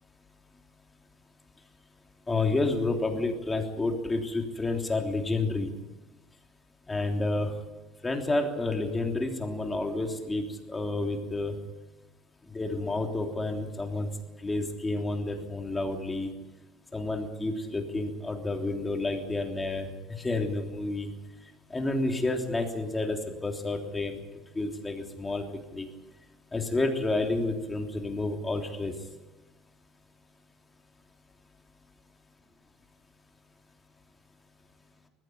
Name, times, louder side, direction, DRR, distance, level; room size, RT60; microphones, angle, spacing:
voice 1, 2.3-5.7 6.9-7.5 8.0-11.5 12.5-14.1 14.4-16.3 16.9-19.9 20.2-21.1 21.7-24.2 24.5-25.4 25.7-25.9 26.5-28.9, left 2 dB, 15° left, 3 dB, 3.3 m, -30 dB
20.0 x 15.0 x 9.8 m, 1.1 s
cardioid pair, 130°, 0 cm